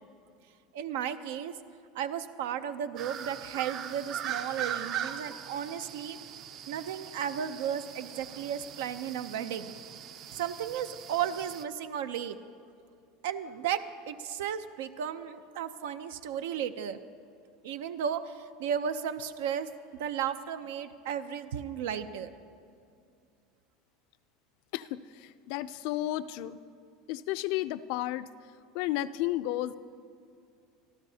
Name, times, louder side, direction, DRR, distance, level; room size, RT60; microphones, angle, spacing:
voice 1, 0.7-1.6 1.9-6.2 6.7-9.8 10.3-12.4 13.2-17.0 17.6-19.7 20.0-22.3, right 9 dB, 85° right, 11 dB, 0.6 m, -34 dB
sound 1, 3.0-11.6, right 9 dB, 40° right, 0.5 m, -40 dB
voice 2, 24.7-26.6 27.1-28.3 28.7-29.8, left 14 dB, 65° left, 14 dB, 0.4 m, -32 dB
27.5 x 12.5 x 2.8 m, 2.4 s
supercardioid pair, 150°, 0 cm